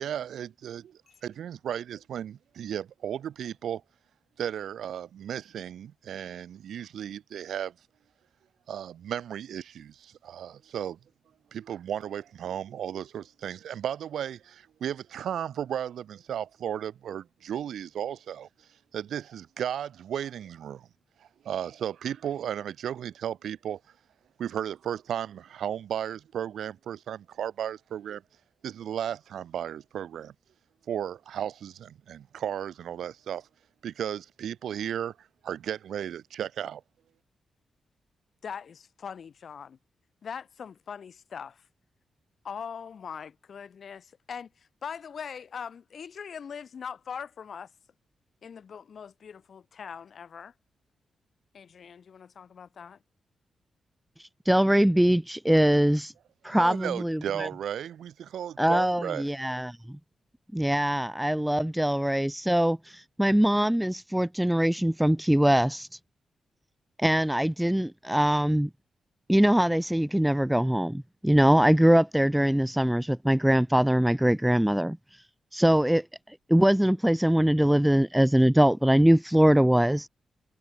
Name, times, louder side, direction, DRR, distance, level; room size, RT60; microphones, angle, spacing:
voice 1, 0.0-3.8 4.4-7.7 8.7-11.0 11.5-18.5 18.9-20.9 21.2-23.8 24.4-28.2 28.6-30.3 30.9-33.5 33.8-36.8 56.5-59.3, right 9 dB, 80° right, 1.2 m, -34 dB
voice 2, 38.4-39.8 40.2-41.7 42.4-47.7 48.4-50.5 51.5-53.0, left 7 dB, 45° left, 2.5 m, -41 dB
voice 3, 54.2-56.1 56.4-57.5 58.6-59.8 60.5-65.9 67.0-68.7 69.3-75.0 75.5-76.0 76.5-80.1, equal, 5° right, 0.6 m, -22 dB
wide cardioid pair, 175°, 0 cm